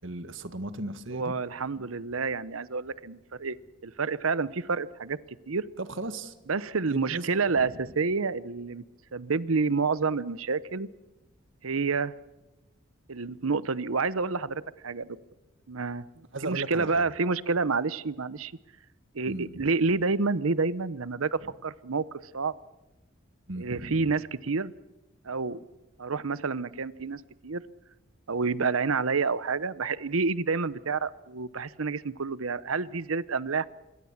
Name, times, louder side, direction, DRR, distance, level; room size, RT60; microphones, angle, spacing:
voice 1, 0.0-1.3 1.8-1.9 5.8-6.3 6.9-7.3 16.3-17.1 19.3-19.5 23.5-24.1, right 2 dB, 65° right, 10 dB, 1.7 m, -36 dB
voice 2, 1.1-3.6 3.8-5.2 5.5-5.6 6.5-8.8 9.1-10.9 11.6-12.1 13.1-15.2 15.7-18.5 19.1-22.5 23.6-24.7 25.2-25.6 26.0-27.6 28.3-33.7, right 4 dB, 85° right, 17 dB, 0.9 m, -29 dB
26.5 x 22.0 x 7.3 m, 1.0 s
head